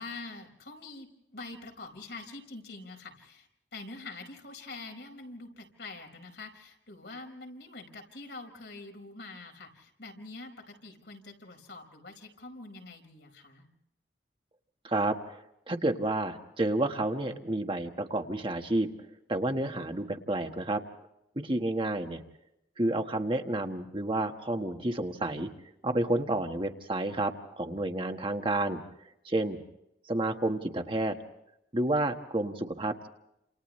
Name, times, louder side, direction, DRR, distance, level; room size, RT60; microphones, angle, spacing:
voice 1, 0.0-13.7, left 3 dB, 80° left, 3 dB, 5.1 m, -45 dB
voice 2, 14.8-15.2 15.7-18.9 19.3-20.8 21.4-22.2 22.8-25.5 25.8-28.8 29.2-29.6 30.1-31.1 31.7-33.1, right 2 dB, 30° right, 4 dB, 1.4 m, -30 dB
30.0 x 28.0 x 3.2 m, 0.82 s
head